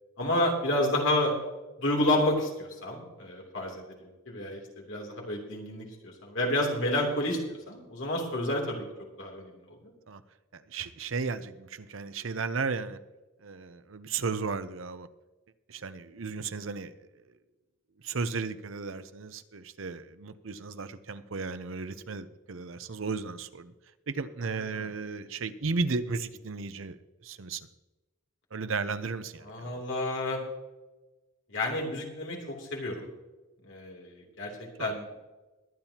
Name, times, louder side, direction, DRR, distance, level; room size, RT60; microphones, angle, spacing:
voice 1, 0.2-1.3 1.8-8.8 9.2-9.9 24.7-24.9 29.4-30.4 31.5-33.1 33.6-35.0, left 1 dB, 65° left, 3.0 m, -30 dB
voice 2, 10.5-13.0 13.4-15.1 15.7-16.9 18.0-23.7 24.1-27.0 27.2-27.7 28.5-29.5 29.7-29.8 34.8-35.0, right 4 dB, 75° right, 0.7 m, -34 dB
22.0 x 9.0 x 2.9 m
head